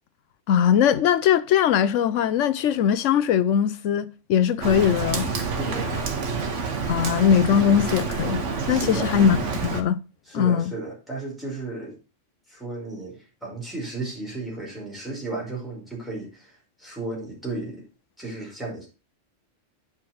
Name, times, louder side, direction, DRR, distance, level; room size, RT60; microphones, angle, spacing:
voice 1, 0.5-5.3 6.9-8.4 8.7-9.4 9.6-10.0 10.3-10.7, left 8 dB, 85° left, 1.0 m, -20 dB
Rain, 4.6-9.8, right 4 dB, 75° right, 1.5 m, -28 dB
voice 2, 5.6-6.0 8.7-9.1 10.3-12.0 12.5-17.9 18.2-18.9, right 2 dB, ahead, 5.2 m, -34 dB
8.8 x 5.7 x 6.0 m
omnidirectional pair, 1.3 m